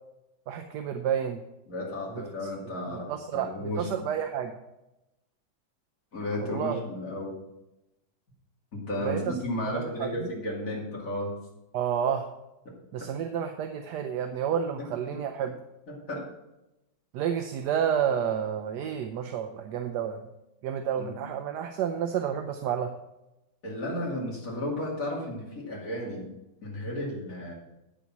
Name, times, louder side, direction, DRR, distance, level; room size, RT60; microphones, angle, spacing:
voice 1, 0.5-1.4 2.1-2.2 3.1-4.6 6.4-6.8 9.0-9.3 9.7-10.3 11.7-12.3 12.9-15.6 17.1-20.2 20.6-22.9, right 8 dB, 70° right, 6 dB, 1.1 m, -30 dB
voice 2, 1.7-3.9 6.1-7.4 8.7-11.3 12.6-13.1 15.1-15.5 15.9-16.3 21.0-21.2 23.6-26.3 26.6-27.5, left 1 dB, 45° left, -3 dB, 2.9 m, -34 dB
8.7 x 7.2 x 5.9 m, 0.93 s
omnidirectional pair, 2.2 m